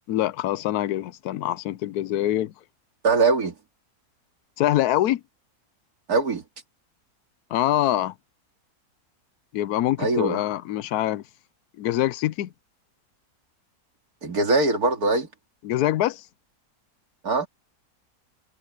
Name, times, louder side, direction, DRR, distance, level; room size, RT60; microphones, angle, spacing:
voice 1, 0.1-2.5 4.6-5.2 7.5-8.1 9.5-11.2 11.8-12.5 15.6-16.2, left 13 dB, 75° left, 1.1 m, -24 dB
voice 2, 3.0-3.5 6.1-6.4 10.0-10.4 14.2-15.3 17.2-17.5, right 3 dB, 70° right, 2.8 m, -22 dB
omnidirectional pair, 1.7 m